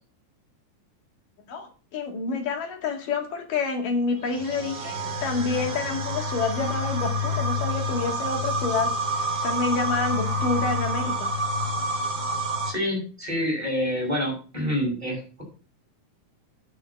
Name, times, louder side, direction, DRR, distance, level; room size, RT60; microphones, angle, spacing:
voice 1, 1.5-11.3, left 4 dB, 75° left, 3 dB, 3.7 m, -28 dB
sound 1, 4.3-12.7, equal, 30° right, 4.2 m, -28 dB
voice 2, 12.6-15.4, equal, 10° right, -2 dB, 5.9 m, -27 dB
9.5 x 6.9 x 7.1 m, 0.36 s
omnidirectional pair, 3.9 m